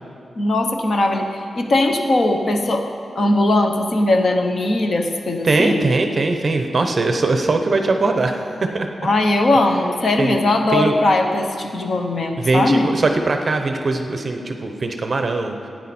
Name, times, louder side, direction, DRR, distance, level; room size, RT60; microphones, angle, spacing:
voice 1, 0.4-2.9 3.1-5.9 9.0-12.9, left 2 dB, 45° left, 4 dB, 0.8 m, -19 dB
voice 2, 5.4-8.9 10.2-10.4 10.7-11.0 12.4-15.5, right 3 dB, 35° right, 5 dB, 0.7 m, -20 dB
15.0 x 9.2 x 4.3 m, 2.6 s
wide cardioid pair, 180°, 0 cm